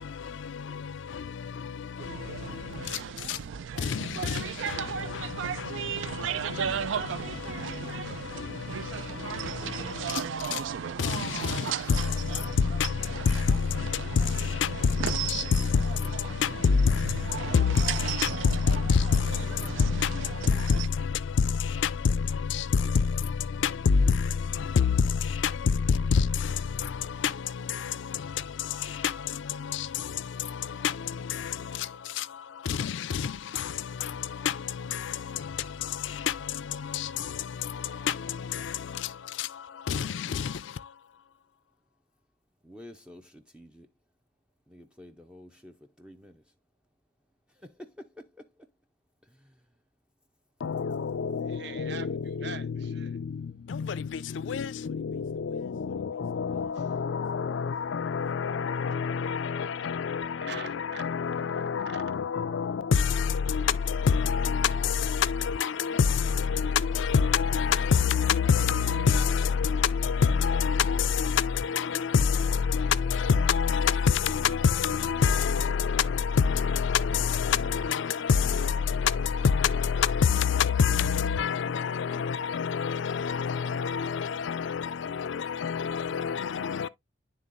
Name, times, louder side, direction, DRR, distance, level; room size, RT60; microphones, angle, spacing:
sound 1, 2.0-20.9, right 7 dB, 75° right, 0.4 m, -35 dB
voice 1, 18.7-19.2 23.9-24.0 24.8-24.9 26.1-26.2 32.8-32.9 39.9-40.0 50.6-51.5 51.8-52.0 54.5-54.7 55.0-55.2 55.5-55.6 56.2-59.6 59.8-60.5 61.0-63.6 63.9-64.7 65.1-66.0 66.5-66.7 67.0-69.7 70.0-72.3 72.7-76.0 76.4-78.6 79.0-79.1 79.4-84.8 85.3-86.9, left 6 dB, 70° left, 0.4 m, -26 dB
voice 2, 42.6-43.9 44.7-46.4 47.5-48.5, left 1 dB, 5° right, 0.5 m, -49 dB
voice 3, 51.5-53.2 60.4-61.1 61.5-62.0, right 5 dB, 55° right, 0.8 m, -43 dB
11.0 x 3.7 x 2.5 m
head